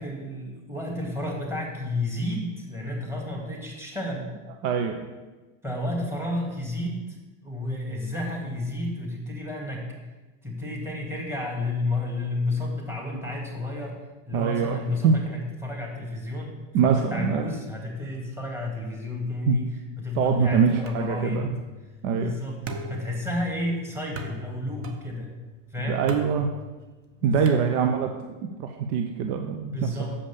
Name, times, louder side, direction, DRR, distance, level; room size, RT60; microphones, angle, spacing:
voice 1, 0.0-4.3 5.6-7.1 7.4-9.9 10.4-14.0 14.3-19.7 20.0-21.5 22.1-25.3 25.7-26.0 27.2-27.6 29.6-30.2, left 2 dB, 5° right, -1 dB, 2.5 m, -31 dB
voice 2, 4.6-5.0 14.3-15.2 16.7-17.4 19.5-19.6 20.1-21.6 22.0-22.4 25.8-26.5 27.2-29.9, right 6 dB, 60° right, 5 dB, 0.8 m, -24 dB
sound 1, 20.9-28.2, right 1 dB, 35° right, 1.1 m, -41 dB
7.1 x 5.2 x 7.0 m, 1.2 s
hypercardioid pair, 105°, 41 cm